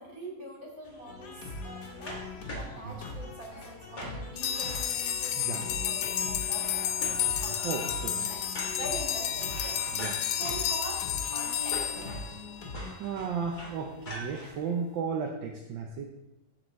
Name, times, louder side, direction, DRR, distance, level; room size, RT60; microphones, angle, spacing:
voice 1, 0.0-2.2 2.6-6.9 7.4-7.7 8.1-9.8 10.4-12.4, right 1 dB, 45° right, -3 dB, 3.0 m, -43 dB
sound 1, 0.8-14.5, equal, 25° left, 1.6 m, -45 dB
sound 2, 1.1-12.9, left 3 dB, 60° left, 1.8 m, -42 dB
sound 3, 4.4-12.9, left 9 dB, 90° left, 0.7 m, -31 dB
voice 2, 7.6-8.2 10.0-10.2 12.9-16.0, right 5 dB, 80° right, 2 dB, 1.5 m, -34 dB
14.0 x 4.8 x 4.0 m, 0.94 s
omnidirectional pair, 2.0 m